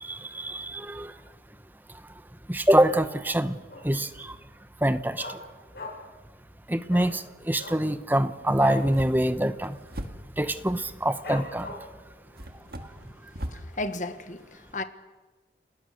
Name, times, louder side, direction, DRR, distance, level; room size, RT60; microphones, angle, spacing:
voice 1, 0.0-1.1 2.5-3.6 3.8-4.3 4.8-5.3 6.7-9.8 10.4-11.7, right 1 dB, 10° right, 0.9 m, -25 dB
Dog, 3.7-4.1 4.4-4.5 4.8-6.2 6.5-6.6 6.9-7.1 7.5-8.9 9.3-9.4 9.7-10.1 10.6-10.7 11.2-12.0 12.5-12.6, left 1 dB, 65° left, 7.9 m, -39 dB
sound 1, 8.7-10.6 11.6-11.7 12.3-13.7, equal, 55° right, 2.1 m, -39 dB
voice 2, 13.5-14.8, left 2 dB, 45° left, 1.5 m, -34 dB
30.0 x 19.5 x 6.6 m
head